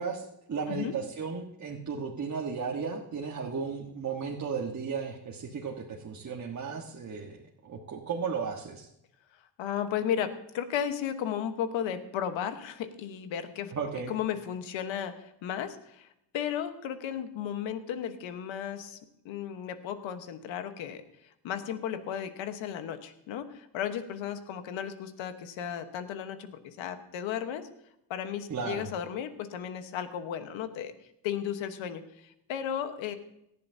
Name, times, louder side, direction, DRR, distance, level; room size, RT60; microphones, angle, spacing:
voice 1, 0.0-8.9 13.7-14.1 28.5-28.9, right 5 dB, 40° right, -1 dB, 1.4 m, -35 dB
voice 2, 9.6-13.7 14.1-16.1 16.3-19.0 19.2-21.0 21.4-27.7 28.1-30.9 31.2-33.1, left 9 dB, 80° left, 9 dB, 1.3 m, -34 dB
17.5 x 11.5 x 2.8 m, 0.79 s
cardioid pair, 95°, 46 cm